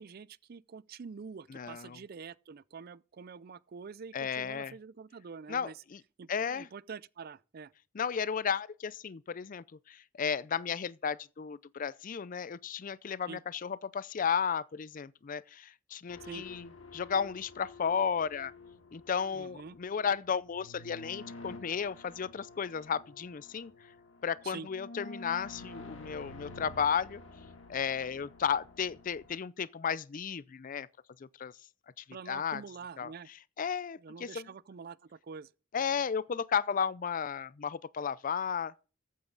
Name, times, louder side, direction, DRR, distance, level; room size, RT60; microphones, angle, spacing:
voice 1, 0.0-5.8 6.2-7.7 13.3-13.4 16.2-16.5 19.3-19.8 24.4-24.7 32.1-33.3 34.0-35.5, right 5 dB, 50° right, 0.4 m, -46 dB
voice 2, 1.5-2.0 4.1-4.7 5.5-6.0 6.3-6.7 7.9-18.5 18.9-23.7 24.2-27.2 27.7-30.9 31.4-31.5 32.0-32.6 33.0-33.1 33.6-34.5 35.7-38.7, left 7 dB, 45° left, 0.4 m, -34 dB
sound 1, 16.1-29.4, left 3 dB, 75° left, 2.3 m, -50 dB
14.5 x 8.5 x 3.9 m
head